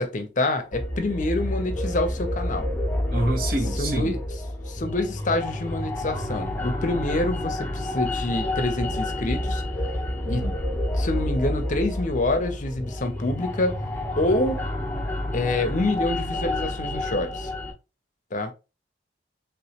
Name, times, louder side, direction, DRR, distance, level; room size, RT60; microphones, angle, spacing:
voice 1, 0.0-2.7 3.8-4.2 4.7-9.6 10.3-10.5 11.0-13.8 14.2-14.6 15.3-17.5 18.3-18.5, left 2 dB, 45° left, 0.6 m, -26 dB
sound 1, 0.7-17.7, left 1 dB, 10° left, 0.9 m, -29 dB
voice 2, 3.1-4.1 10.2-10.6, right 1 dB, 55° right, 1.0 m, -27 dB
3.4 x 3.0 x 2.9 m
head